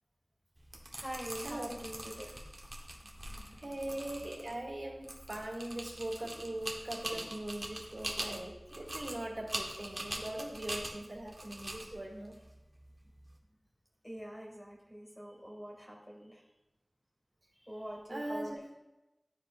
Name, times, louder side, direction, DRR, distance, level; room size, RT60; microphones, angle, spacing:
sound 1, 0.6-13.3, right 1 dB, 45° right, 1.1 m, -43 dB
voice 1, 0.9-2.4 3.0-3.7 14.0-16.4 17.6-18.5, equal, 5° left, -3 dB, 2.2 m, -45 dB
voice 2, 3.6-12.4 18.1-18.6, right 1 dB, 75° right, -2 dB, 1.8 m, -41 dB
11.0 x 3.9 x 2.5 m, 0.98 s
wide cardioid pair, 40°, 0 cm